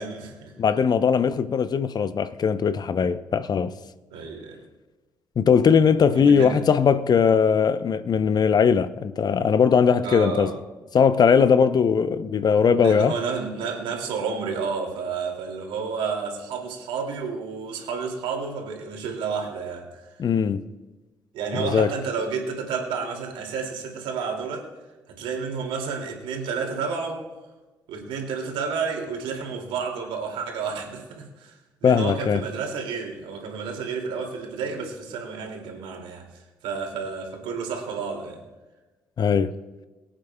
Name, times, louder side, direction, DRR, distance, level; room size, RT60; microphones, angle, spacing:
voice 1, 0.0-0.5 4.1-4.6 6.1-6.6 10.0-10.6 12.7-20.1 21.3-24.7 25.2-27.2 27.9-38.4, right 5 dB, 70° right, 2.6 m, -31 dB
voice 2, 0.6-3.7 5.4-10.5 10.9-13.1 20.2-20.7 21.5-21.9 31.8-32.4 39.2-39.5, left 6 dB, 50° left, 0.7 m, -20 dB
23.5 x 8.9 x 2.3 m
hypercardioid pair, 45°, 9 cm